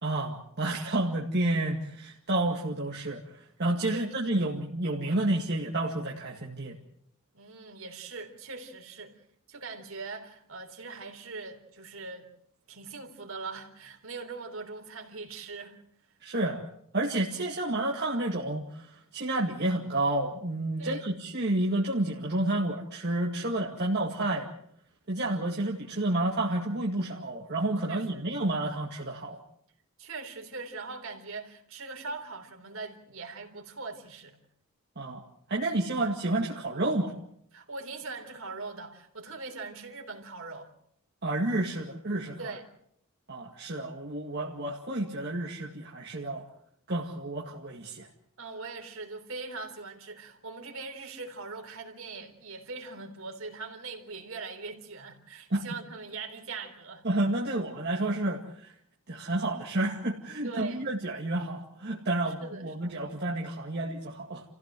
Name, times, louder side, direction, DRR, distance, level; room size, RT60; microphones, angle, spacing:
voice 1, 0.0-6.8 16.2-16.7 16.9-24.5 25.1-29.4 35.0-35.2 35.5-37.1 41.2-42.5 43.3-46.4 46.9-48.1 55.5-55.6 57.0-58.7 59.1-64.4, right 1 dB, 50° right, 2.3 m, -30 dB
voice 2, 7.3-9.2 9.5-12.3 12.7-15.8 20.8-21.1 27.9-28.2 30.0-34.4 37.5-40.7 42.4-42.7 48.4-57.0 60.4-60.9 62.3-62.7, right 4 dB, 70° right, 3.8 m, -41 dB
29.5 x 16.0 x 7.7 m
head